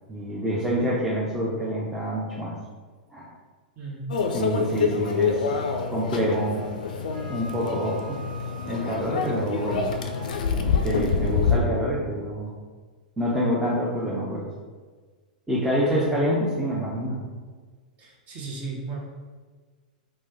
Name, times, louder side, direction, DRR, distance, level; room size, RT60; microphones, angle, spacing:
voice 1, 0.1-2.5 3.1-3.3 4.3-6.7 7.3-8.2 8.7-9.9 10.5-12.5 13.2-14.5 15.5-17.2, equal, 10° right, -6 dB, 0.5 m, -27 dB
voice 2, 3.8-4.1 15.8-16.1 18.0-19.0, right 3 dB, 35° right, -2 dB, 0.8 m, -35 dB
Microwave oven, 4.1-11.6, left 5 dB, 70° left, 0.3 m, -26 dB
Wind instrument woodwind instrument, 6.2-10.3, right 4 dB, 75° right, 0.4 m, -46 dB
3.1 x 2.1 x 3.4 m, 1.4 s
figure-of-eight pair, 100°, 5 cm